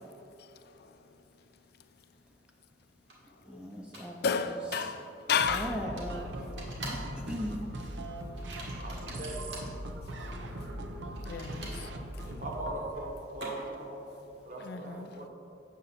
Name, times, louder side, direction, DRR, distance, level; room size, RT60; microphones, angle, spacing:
sound 1, 3.1-3.2 3.9-4.3 4.7-4.9 6.0-6.1 6.6-7.1 7.4-7.7 8.3-9.7 11.1-13.9, right 1 dB, 70° right, 1.9 m, -44 dB
voice 1, 3.5-4.6 5.5-6.3 6.9-7.7, equal, 5° right, 0 dB, 0.5 m, -38 dB
voice 2, 4.2-5.7 10.2-10.3 11.2-11.9 14.6-15.1, left 6 dB, 65° left, 10 dB, 0.4 m, -32 dB
sound 2, 5.4-12.8, right 1 dB, 85° right, 0.7 m, -40 dB
voice 3, 8.8-9.4 12.2-13.1 13.3-14.1 14.5-15.3, right 2 dB, 50° right, -1 dB, 1.2 m, -40 dB
8.3 x 6.7 x 4.1 m, 2.8 s
head